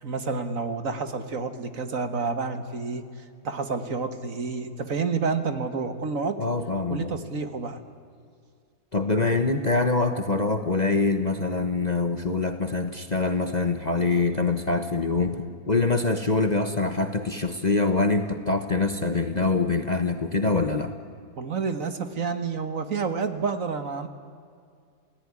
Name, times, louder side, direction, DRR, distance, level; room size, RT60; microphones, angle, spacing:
voice 1, 0.0-3.0 3.4-6.4 6.9-7.8 21.4-24.1, right 4 dB, 55° right, 9 dB, 1.8 m, -29 dB
voice 2, 6.4-7.1 8.9-20.9, left 3 dB, 30° left, 8 dB, 1.1 m, -24 dB
28.5 x 18.5 x 9.8 m, 2.3 s
omnidirectional pair, 1.7 m